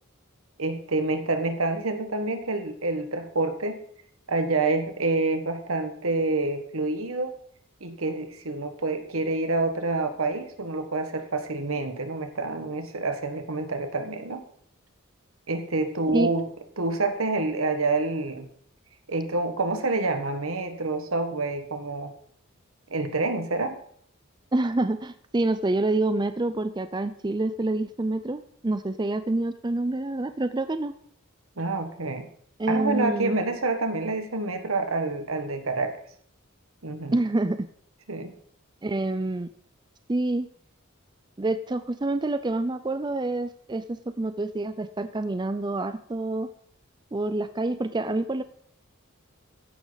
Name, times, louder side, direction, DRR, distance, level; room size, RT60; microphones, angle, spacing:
voice 1, 0.6-3.8 4.3-7.4 7.8-14.4 15.5-16.5 16.8-18.5 19.1-22.1 22.9-23.8 31.6-32.3 32.7-35.9 36.8-37.2 38.1-38.3, right 3 dB, 85° right, 8 dB, 1.6 m, -27 dB
voice 2, 24.5-30.9 32.6-33.4 37.1-37.7 38.8-39.5 40.1-40.5 41.4-46.5 47.1-48.4, right 2 dB, 20° right, 11 dB, 0.5 m, -27 dB
14.5 x 11.0 x 4.1 m, 0.63 s
head